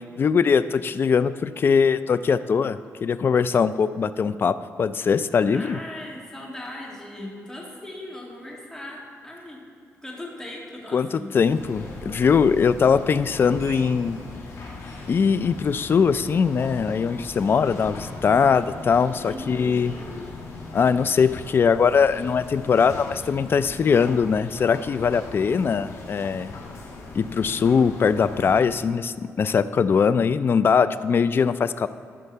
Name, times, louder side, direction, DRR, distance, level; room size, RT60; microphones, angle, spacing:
voice 1, 0.2-5.8 10.9-14.2 15.1-19.9 20.7-26.5 27.2-31.9, left 6 dB, 45° left, 14 dB, 0.4 m, -21 dB
voice 2, 5.4-9.6 10.0-11.3 19.3-19.9, left 1 dB, 10° left, -2 dB, 2.1 m, -38 dB
sound 1, 11.4-28.6, left 3 dB, 75° left, 2.4 m, -38 dB
12.5 x 4.5 x 6.7 m, 2.4 s
cardioid pair, 100°, 5 cm